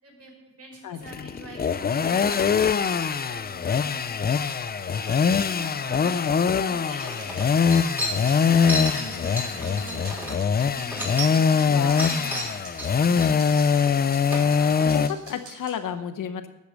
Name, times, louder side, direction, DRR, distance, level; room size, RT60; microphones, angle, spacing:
voice 1, 0.0-4.4 4.8-10.2 10.6-13.5, right 1 dB, 50° right, -2 dB, 5.8 m, -45 dB
voice 2, 0.8-1.3 11.7-12.0 14.8-16.5, left 8 dB, 70° left, 9 dB, 1.0 m, -32 dB
sound 1, 1.0-15.1, left 6 dB, 30° left, 0.5 m, -23 dB
sound 2, 4.4-15.7, right 3 dB, 80° right, 5.1 m, -48 dB
sound 3, 7.0-11.7 12.0-14.9, equal, 5° right, 3.5 m, -33 dB
13.0 x 8.3 x 6.6 m, 1.0 s
cardioid pair, 125°, 32 cm